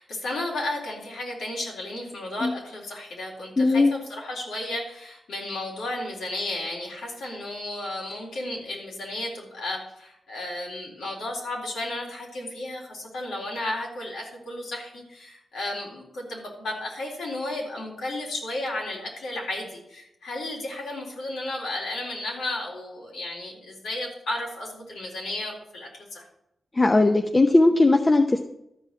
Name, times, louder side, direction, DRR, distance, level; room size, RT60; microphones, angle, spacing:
voice 1, 0.0-26.2, left 1 dB, 90° left, -2 dB, 3.9 m, -33 dB
voice 2, 3.6-3.9 26.7-28.4, left 2 dB, 25° left, 4 dB, 0.8 m, -18 dB
12.5 x 5.3 x 8.3 m, 0.82 s
cardioid pair, 75°, 0 cm